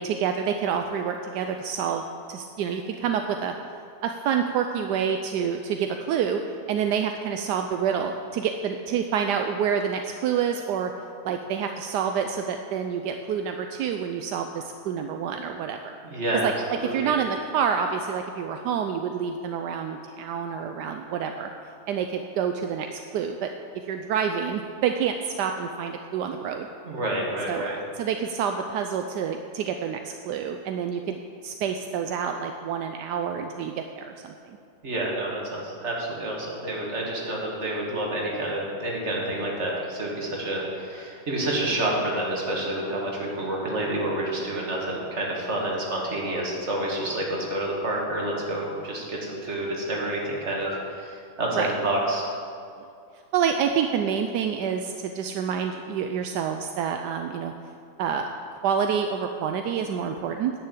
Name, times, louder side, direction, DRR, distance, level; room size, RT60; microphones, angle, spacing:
voice 1, 0.0-3.5 4.0-6.4 6.7-10.9 11.2-16.0 16.4-21.5 21.9-23.5 23.8-26.7 27.5-34.6 47.1-47.2 51.5-51.7 53.3-57.5 58.0-58.3 58.6-60.5, right 7 dB, 80° right, 5 dB, 1.2 m, -28 dB
voice 2, 16.1-17.1 26.8-27.8 34.8-52.2, right 1 dB, 40° right, -2 dB, 2.2 m, -28 dB
10.0 x 6.7 x 8.2 m, 2.5 s
omnidirectional pair, 1.8 m